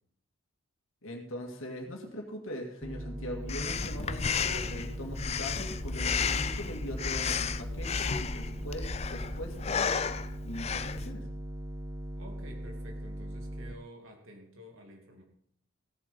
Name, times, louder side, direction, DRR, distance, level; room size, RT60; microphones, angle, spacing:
voice 1, 1.0-9.9 10.4-11.3, equal, 80° left, 1 dB, 2.2 m, -41 dB
sound 1, 2.8-13.7, equal, 15° right, 0.6 m, -40 dB
Breathing, 3.5-11.1, left 6 dB, 30° left, 0.4 m, -33 dB
voice 2, 12.1-15.2, equal, 75° right, 2 dB, 2.8 m, -50 dB
16.5 x 6.9 x 5.4 m, 0.66 s
head